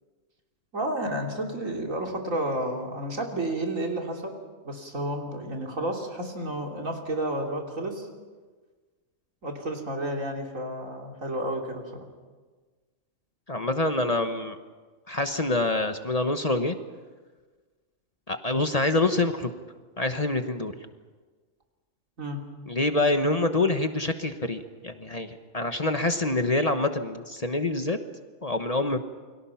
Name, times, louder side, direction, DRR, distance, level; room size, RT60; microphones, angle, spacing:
voice 1, 0.7-4.4 4.6-8.1 9.4-11.8 22.2-22.4, right 1 dB, 80° right, 1 dB, 3.5 m, -31 dB
voice 2, 13.5-14.6 15.1-16.8 18.3-19.5 20.0-20.8 22.7-28.0 28.4-29.0, left 2 dB, 30° left, 7 dB, 1.2 m, -26 dB
29.0 x 23.0 x 5.8 m, 1.4 s
omnidirectional pair, 1.4 m